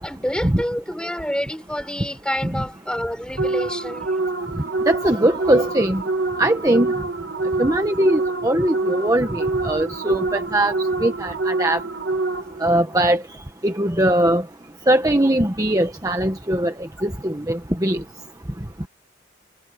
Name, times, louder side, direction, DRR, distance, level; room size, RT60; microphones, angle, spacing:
voice 1, 0.0-4.1 12.3-12.6, equal, 5° left, 4.5 m, -28 dB
sound 1, 3.4-12.8, right 3 dB, 60° right, 2.0 m, -26 dB
voice 2, 4.9-6.0 6.4-6.9 7.6-10.7 11.0-11.8 12.6-13.2 13.6-14.4 14.9-16.7 17.0-18.0, right 1 dB, 20° right, 1.3 m, -20 dB
head